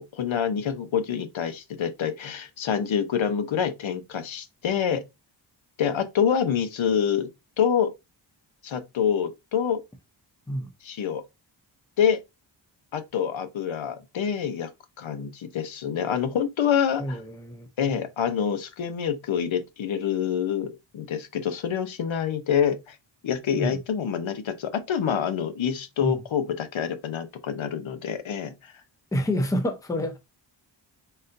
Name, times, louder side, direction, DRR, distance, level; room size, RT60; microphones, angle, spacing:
voice 1, 0.0-5.0 5.8-7.3 7.6-7.9 8.6-9.8 10.8-11.2 12.0-12.2 12.9-14.7 15.0-17.2 17.8-23.0 23.2-28.5, left 8 dB, 75° left, 0.8 m, -26 dB
voice 2, 17.0-17.7 23.5-23.8 26.0-26.2 29.1-30.2, equal, 5° left, 0.5 m, -28 dB
4.0 x 3.9 x 2.5 m
wide cardioid pair, 150°, 47 cm